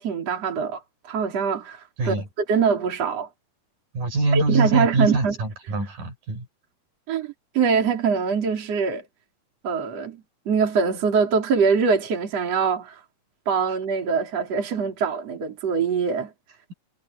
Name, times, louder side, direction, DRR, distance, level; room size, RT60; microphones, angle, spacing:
voice 1, 0.0-2.1 2.5-3.3 4.3-5.3 7.1-9.0 9.6-13.0 13.5-16.3, right 6 dB, 50° right, 4.6 m, -23 dB
voice 2, 3.9-6.5, right 2 dB, 75° right, 7.5 m, -24 dB
omnidirectional pair, 3.9 m